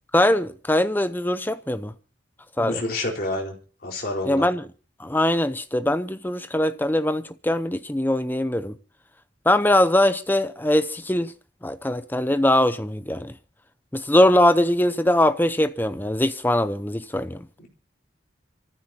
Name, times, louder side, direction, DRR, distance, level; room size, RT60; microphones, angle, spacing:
voice 1, 0.1-1.9 2.6-2.8 4.3-4.7 5.0-8.8 9.5-11.3 11.6-13.3 13.9-17.5, left 1 dB, 10° left, 0.7 m, -21 dB
voice 2, 2.6-3.5 3.8-4.5 17.6-17.7, left 2 dB, 50° left, 4.5 m, -28 dB
29.0 x 14.5 x 2.9 m
head